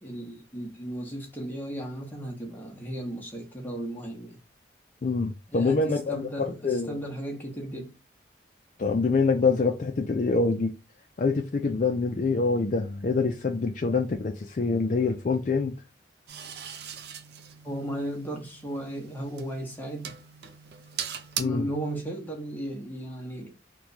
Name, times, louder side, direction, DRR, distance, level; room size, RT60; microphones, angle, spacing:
voice 1, 0.0-4.4 5.5-5.8 6.1-7.9 17.6-20.1 21.4-23.5, right 1 dB, 10° left, 0.8 m, -35 dB
voice 2, 5.0-7.0 8.8-10.7 11.2-15.7 21.4-21.7, left 4 dB, 45° left, 0.4 m, -25 dB
sound 1, 16.3-21.4, right 8 dB, 60° right, 0.5 m, -40 dB
3.0 x 2.2 x 3.8 m
head